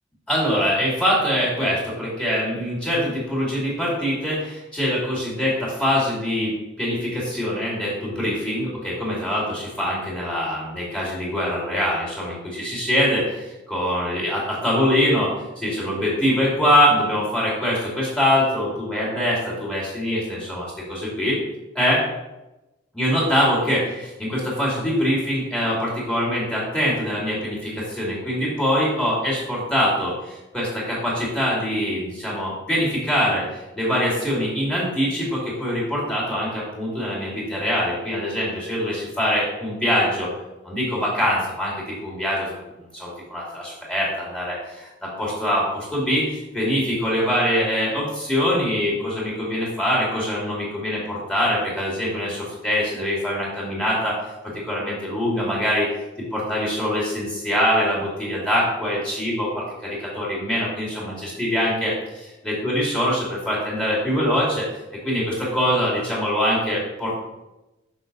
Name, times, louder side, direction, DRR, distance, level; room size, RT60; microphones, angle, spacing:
voice 1, 0.3-13.2 13.7-15.3 15.6-21.4 21.7-22.0 22.9-40.3 40.6-41.7 42.0-42.6 42.9-44.9 45.2-54.1 54.6-55.9 56.2-64.6 65.0-67.1, equal, 5° left, -6 dB, 2.4 m, -23 dB
6.3 x 6.0 x 4.0 m, 1.0 s
head